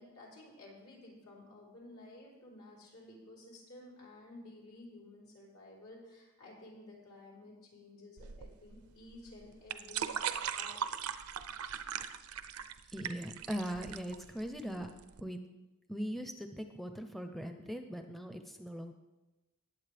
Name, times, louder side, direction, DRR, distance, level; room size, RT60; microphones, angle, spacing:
voice 1, 0.0-10.8, left 2 dB, 85° left, -4 dB, 4.0 m, -53 dB
sound 1, 8.2-15.2, right 8 dB, 85° right, 0.6 m, -40 dB
voice 2, 12.9-14.9 15.2-15.4 15.9-18.9, equal, ahead, 6 dB, 0.5 m, -40 dB
19.5 x 8.0 x 3.4 m, 1.1 s
head